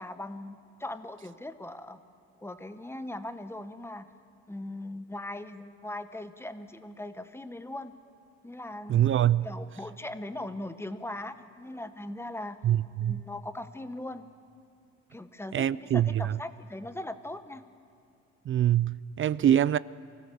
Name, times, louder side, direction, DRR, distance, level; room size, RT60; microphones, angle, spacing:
voice 1, 0.0-2.0 2.4-4.1 4.5-7.9 8.4-9.0 9.4-12.6 13.0-14.3 15.1-17.6, left 1 dB, 10° left, 10 dB, 1.0 m, -39 dB
voice 2, 8.9-9.5 12.6-13.2 15.5-16.3 18.5-19.8, right 11 dB, 45° right, 19 dB, 0.4 m, -24 dB
24.5 x 15.5 x 6.9 m, 2.6 s
cardioid pair, 90°, 30 cm